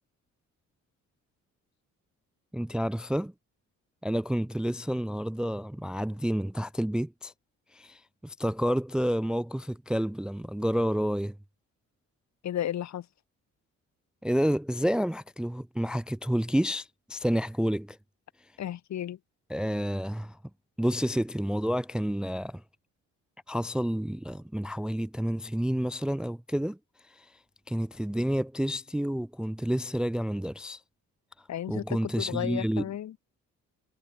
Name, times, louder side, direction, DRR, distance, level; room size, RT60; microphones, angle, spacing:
voice 1, 2.5-3.3 4.0-7.3 7.7-11.4 14.2-18.0 19.5-20.4 20.8-22.6 23.5-26.8 27.1-27.3 27.7-30.8 31.7-32.9, equal, 5° right, 0.4 m, -29 dB
voice 2, 12.4-13.1 18.6-19.2 31.5-33.2, left 11 dB, 65° left, 1.9 m, -33 dB
cardioid pair, 90°, 30 cm